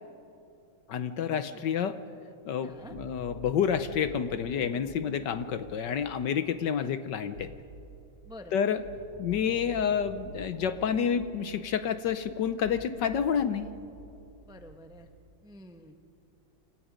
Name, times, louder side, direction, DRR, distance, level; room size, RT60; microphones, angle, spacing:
voice 1, 0.9-2.0 2.5-7.5 8.5-8.8 9.2-13.7, left 8 dB, 65° left, 11 dB, 1.3 m, -29 dB
voice 2, 2.6-2.9 6.8-6.9 8.2-8.6 14.5-15.1 15.4-16.0, left 1 dB, 5° right, 6 dB, 0.5 m, -48 dB
sound 1, 2.7-15.3, right 3 dB, 80° right, 3.6 m, -48 dB
29.0 x 26.5 x 5.2 m, 2.7 s
omnidirectional pair, 2.3 m